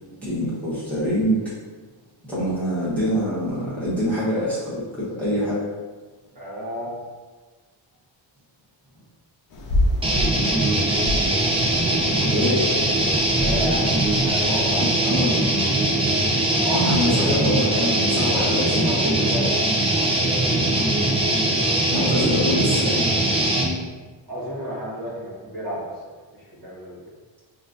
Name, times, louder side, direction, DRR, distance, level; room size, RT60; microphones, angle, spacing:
voice 1, 0.2-1.4 2.3-5.6 12.1-12.7 14.8-15.5 16.7-18.8 21.9-23.1, equal, 5° left, -12 dB, 1.3 m, -24 dB
voice 2, 6.3-6.9 11.6-12.1 12.7-14.9 16.6-17.3 18.3-19.4 19.7-20.9 24.3-25.8 26.4-27.0, equal, 45° right, -7 dB, 1.5 m, -32 dB
sound 1, 9.5-14.8, left 1 dB, 45° left, 0.6 m, -28 dB
sound 2, 10.0-23.7, right 1 dB, 15° right, 0.4 m, -21 dB
5.1 x 2.5 x 2.6 m, 1.4 s
wide cardioid pair, 145°, 47 cm